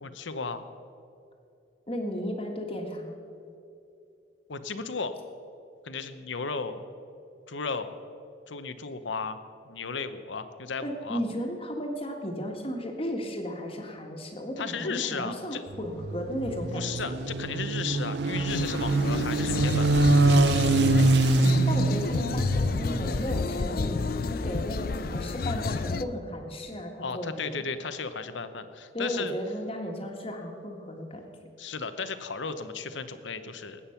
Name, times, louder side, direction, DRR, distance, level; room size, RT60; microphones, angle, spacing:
voice 1, 0.0-0.6 4.5-5.2 5.8-6.8 7.5-7.9 8.5-9.4 9.7-11.2 14.6-15.6 16.7-20.0 27.0-29.4 31.6-33.8, left 4 dB, 75° left, 10 dB, 0.9 m, -35 dB
voice 2, 1.9-3.2 10.8-16.9 21.7-27.5 28.9-31.2, equal, 30° left, 3 dB, 1.6 m, -34 dB
sound 1, 15.7-23.3, right 2 dB, 65° right, 0.7 m, -24 dB
sound 2, 18.5-26.0, left 4 dB, 50° left, 0.4 m, -30 dB
20.0 x 8.7 x 5.8 m, 2.7 s
head